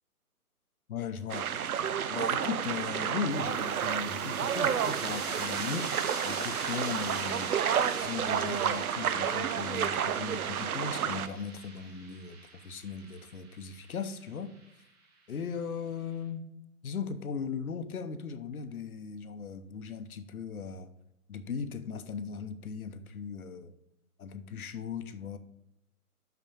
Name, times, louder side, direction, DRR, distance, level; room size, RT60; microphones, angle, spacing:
voice 1, 0.9-1.5 2.1-5.9 6.2-7.5 7.9-14.5 15.3-16.5 16.8-20.9 21.3-23.7 24.2-25.4, left 6 dB, 70° left, 0.9 m, -38 dB
sound 1, 1.3-11.3, right 8 dB, 70° right, 0.6 m, -31 dB
sound 2, 3.3-14.6, right 3 dB, 45° right, 2.2 m, -43 dB
6.0 x 5.9 x 5.4 m
figure-of-eight pair, 135°, 45 cm